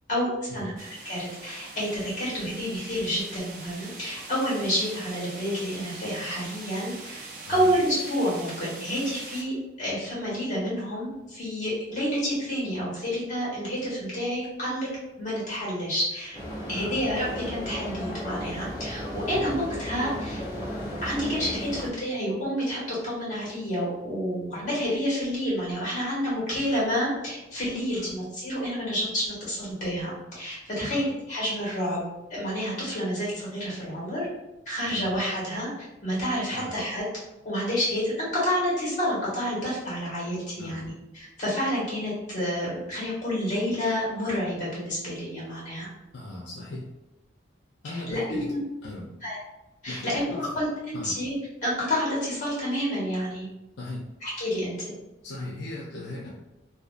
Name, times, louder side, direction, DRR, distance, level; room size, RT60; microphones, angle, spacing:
voice 1, 0.1-0.7 1.0-7.2 7.5-14.9 15.2-16.4 16.7-20.4 20.9-32.0 32.3-34.3 34.6-35.7 36.0-37.0 37.4-45.9 47.9-48.6 49.2-49.4 49.8-51.3 51.6-53.5 54.2-54.8, equal, 40° left, -7 dB, 1.3 m, -29 dB
sound 1, 0.8-9.4, right 3 dB, 45° right, 0.4 m, -43 dB
sound 2, 16.3-21.9, equal, 20° left, 0.7 m, -34 dB
voice 2, 46.1-46.9 47.8-48.5 48.8-49.1 49.9-50.4 50.9-51.1 53.8-54.0 55.2-56.3, left 2 dB, 75° left, -4 dB, 0.5 m, -38 dB
2.6 x 2.1 x 2.4 m, 0.97 s
head